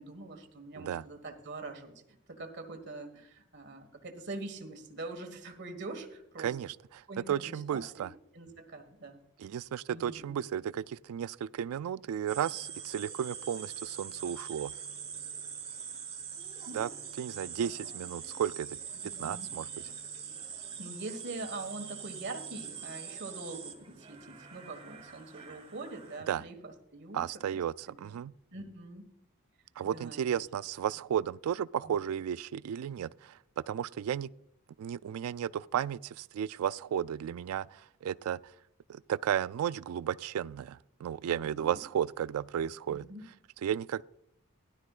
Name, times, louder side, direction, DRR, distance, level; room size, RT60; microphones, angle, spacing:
voice 1, 0.0-1.9 2.3-6.6 7.1-8.1 8.3-9.2 9.9-10.4 16.7-16.9 17.6-17.7 19.0-19.5 20.6-27.9 28.5-29.1 29.9-30.4 31.8-32.0 41.3-41.7 42.9-43.2, right 2 dB, 55° right, 1.6 m, -44 dB
voice 2, 6.4-6.8 7.3-8.1 9.4-14.7 16.7-16.9 17.2-18.8 19.2-19.7 26.3-26.4 27.1-28.3 29.8-34.3 34.8-38.4 38.9-43.1 43.6-44.0, right 9 dB, 90° right, 0.3 m, -34 dB
sound 1, 12.3-26.2, right 7 dB, 30° right, 1.2 m, -43 dB
16.5 x 12.0 x 2.4 m
head